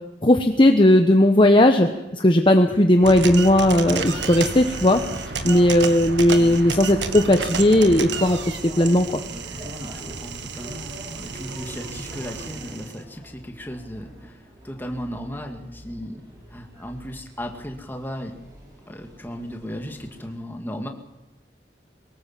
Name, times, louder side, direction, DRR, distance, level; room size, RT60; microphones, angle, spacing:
voice 1, 0.2-5.0 5.4-9.2, left 1 dB, 30° left, 5 dB, 1.1 m, -17 dB
sound 1, 3.0-13.0, right 4 dB, 85° right, 1.7 m, -32 dB
sound 2, 3.7-20.4, right 1 dB, 20° right, 7.4 m, -44 dB
voice 2, 9.6-14.3 14.6-16.2 16.5-18.4 18.9-20.9, equal, 10° left, 3 dB, 2.3 m, -35 dB
23.0 x 19.0 x 7.6 m, 1.0 s
head